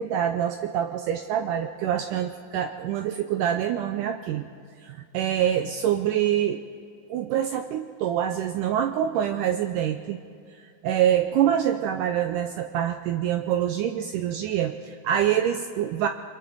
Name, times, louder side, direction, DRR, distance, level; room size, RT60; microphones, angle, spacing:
voice 1, 0.0-4.5 4.8-6.6 7.1-10.2 10.5-16.1, right 10 dB, 90° right, 7 dB, 1.8 m, -25 dB
29.5 x 23.0 x 3.9 m, 2.2 s
omnidirectional pair, 4.4 m